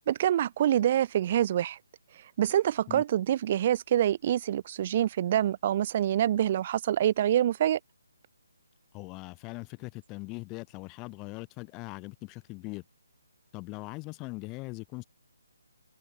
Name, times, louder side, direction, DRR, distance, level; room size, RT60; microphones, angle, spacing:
voice 1, 0.1-1.8 2.4-7.8, right 11 dB, 35° right, 4.8 m, -26 dB
voice 2, 8.9-12.8 13.5-15.0, left 25 dB, 20° left, 7.3 m, -40 dB
figure-of-eight pair, 150°, 0 cm